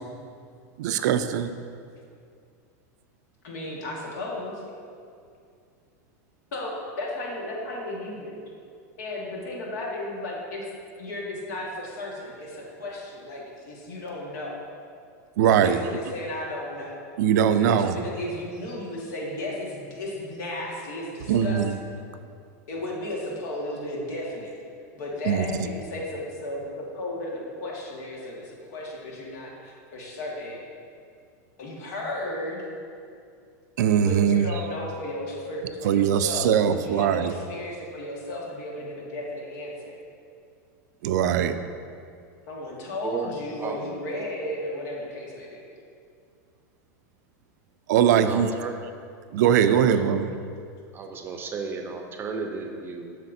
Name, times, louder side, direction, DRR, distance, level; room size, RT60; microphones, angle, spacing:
voice 1, 0.8-1.6 15.4-15.8 17.2-18.0 21.3-21.8 25.3-25.5 33.8-34.5 35.8-37.3 41.0-41.6 47.9-48.5 49.3-50.3, right 8 dB, 80° right, 10 dB, 0.4 m, -21 dB
voice 2, 3.4-4.6 6.5-8.4 9.0-10.6 11.0-14.6 15.4-17.0 17.6-21.8 22.7-24.5 25.0-30.7 31.6-32.7 34.0-40.0 42.5-45.6, left 1 dB, 80° left, -3 dB, 1.7 m, -34 dB
voice 3, 48.1-48.8 49.3-50.1 50.9-53.2, right 4 dB, 25° right, 4 dB, 0.6 m, -34 dB
7.5 x 6.5 x 2.6 m, 2.3 s
supercardioid pair, 140°, 9 cm